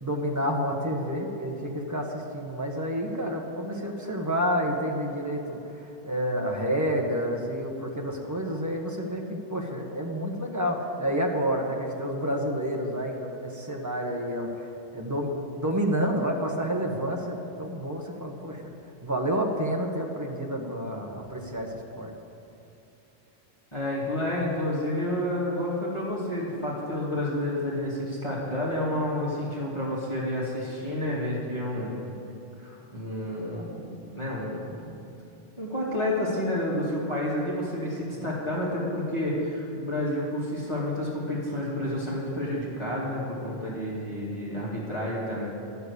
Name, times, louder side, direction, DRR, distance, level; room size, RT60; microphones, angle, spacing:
voice 1, 0.0-18.7 19.0-22.1 31.0-31.1, equal, 15° right, 0 dB, 1.2 m, -29 dB
voice 2, 23.7-31.9 32.6-34.8 35.6-45.5, left 1 dB, 25° left, -7 dB, 2.5 m, -30 dB
12.0 x 6.9 x 8.3 m, 2.8 s
omnidirectional pair, 1.2 m